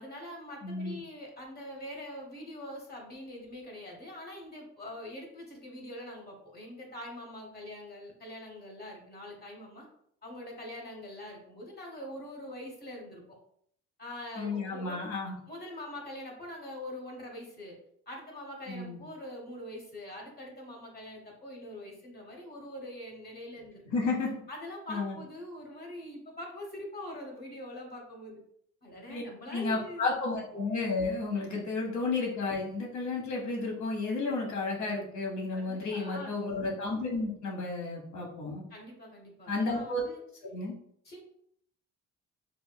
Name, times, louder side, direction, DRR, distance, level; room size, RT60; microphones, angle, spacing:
voice 1, 0.0-9.9 10.2-13.2 14.0-15.0 15.5-17.8 18.1-23.8 24.5-28.4 28.8-30.0 31.4-31.5 35.5-36.3 38.7-40.2 41.0-41.2, left 1 dB, 30° left, 0 dB, 1.0 m, -44 dB
voice 2, 0.6-0.9 14.4-15.4 18.7-19.0 23.8-24.3 24.9-25.2 29.1-29.2 29.5-38.6 39.5-40.0 40.5-40.7, left 3 dB, 70° left, -1 dB, 1.2 m, -32 dB
4.7 x 2.1 x 2.2 m, 0.68 s
cardioid pair, 90°, 30 cm